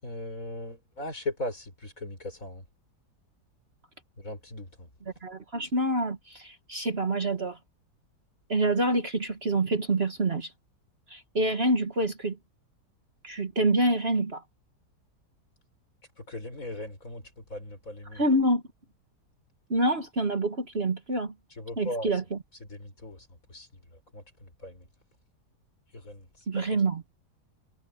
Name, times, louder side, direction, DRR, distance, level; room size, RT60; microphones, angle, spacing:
voice 1, 0.0-2.6 4.2-4.9 16.2-18.2 21.5-22.1 22.7-23.9 24.1-24.9 25.9-26.8, left 1 dB, 50° left, 6.4 m, -39 dB
voice 2, 5.2-7.6 8.5-10.5 11.1-12.4 13.2-14.4 18.1-18.6 19.7-21.3 21.8-22.4 26.5-27.0, right 2 dB, 40° right, 1.8 m, -27 dB
omnidirectional pair, 1.8 m